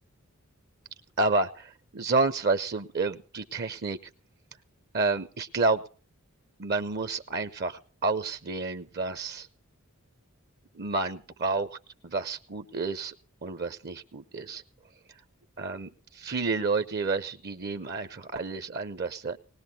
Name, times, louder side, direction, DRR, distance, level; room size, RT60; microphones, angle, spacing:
voice 1, 1.2-4.0 4.9-5.8 6.6-9.5 10.7-11.8 12.0-13.1 13.4-14.6 15.6-19.4, right 3 dB, 45° right, 12 dB, 0.6 m, -30 dB
20.0 x 19.0 x 2.8 m, 0.42 s
head